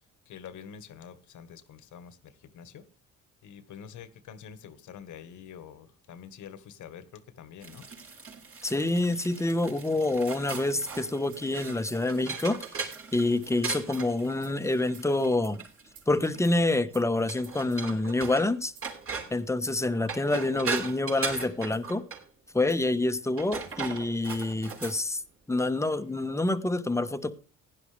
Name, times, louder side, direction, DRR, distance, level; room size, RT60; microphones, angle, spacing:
voice 1, 0.2-2.9 3.4-7.9, left 8 dB, 75° left, 1.6 m, -46 dB
sound 1, 7.6-16.5 17.3-18.5 18.8-19.4 19.9-22.2 23.2-25.0, right 5 dB, 50° right, 4.8 m, -38 dB
voice 2, 8.6-12.6 13.1-15.6 16.1-18.7 19.3-22.1 22.5-25.2 25.5-27.3, left 2 dB, 10° left, 1.1 m, -27 dB
sound 2, 10.5-17.9 18.7-19.0 19.6-19.9 20.7-21.0 21.6-21.9 22.7-23.0 23.7-23.9 24.7-25.0, right 7 dB, 90° right, 2.9 m, -57 dB
16.5 x 11.0 x 3.4 m
cardioid pair, 90°, 30 cm